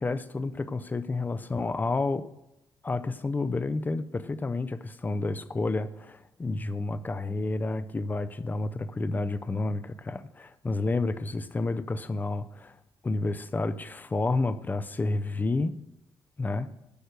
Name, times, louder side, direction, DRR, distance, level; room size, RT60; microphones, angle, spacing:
voice 1, 0.0-2.3 2.8-12.7 13.0-15.8 16.4-16.7, left 3 dB, 20° left, 13 dB, 0.6 m, -30 dB
10.0 x 6.3 x 6.8 m, 0.88 s
cardioid pair, 120°, 9 cm